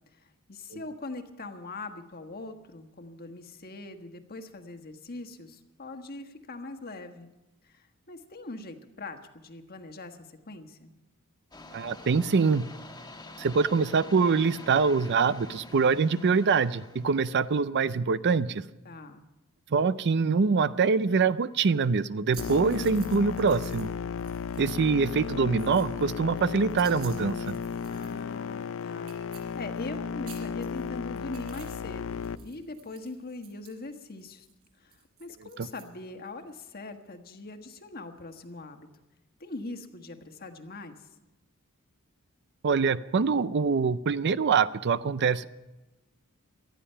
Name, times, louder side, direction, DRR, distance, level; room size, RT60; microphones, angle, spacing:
voice 1, 0.1-7.3 7.6-10.9 18.8-19.2 27.9-34.5 34.8-38.9 39.4-41.1, left 2 dB, 45° left, 6 dB, 1.4 m, -42 dB
sound 1, 11.5-17.6, left 2 dB, 20° left, 1.4 m, -47 dB
voice 2, 11.7-12.6 13.4-18.6 19.7-23.9 24.6-27.5 35.6-35.7 42.6-45.5, right 5 dB, 50° right, 15 dB, 0.5 m, -24 dB
sound 2, 22.3-23.9 24.2-24.8 25.1-28.3 28.6-28.7 29.0-30.0 30.2-31.9 32.1-35.8, right 9 dB, 70° right, 5.8 m, -51 dB
sound 3, 22.4-32.4, left 6 dB, 65° left, 0.5 m, -35 dB
18.5 x 13.0 x 5.6 m, 1.0 s
head